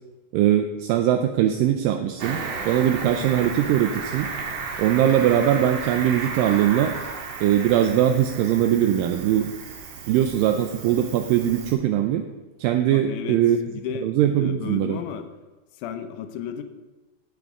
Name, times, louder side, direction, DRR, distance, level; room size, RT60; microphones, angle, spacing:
voice 1, 0.3-4.3 4.8-7.0 7.4-9.5 10.1-12.3 12.6-13.6 14.0-15.0, right 11 dB, 80° right, 6 dB, 2.1 m, -21 dB
Cricket, 2.2-11.7, right 4 dB, 65° right, 2.3 m, -34 dB
voice 2, 12.9-13.4 13.7-14.1 14.4-15.3 15.8-16.6, left 8 dB, 75° left, 8 dB, 1.9 m, -33 dB
18.0 x 6.1 x 3.6 m, 1.2 s
omnidirectional pair, 4.4 m